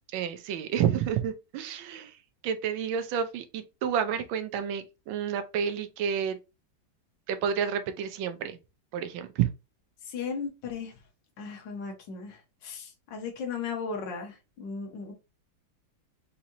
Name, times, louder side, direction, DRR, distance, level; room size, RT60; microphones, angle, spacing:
voice 1, 0.1-2.2 2.4-6.4 7.3-8.6 8.9-9.5, right 8 dB, 85° right, 1.4 m, -30 dB
voice 2, 10.1-10.9 11.4-15.1, left 5 dB, 70° left, 1.7 m, -36 dB
5.1 x 2.8 x 2.7 m
omnidirectional pair, 2.1 m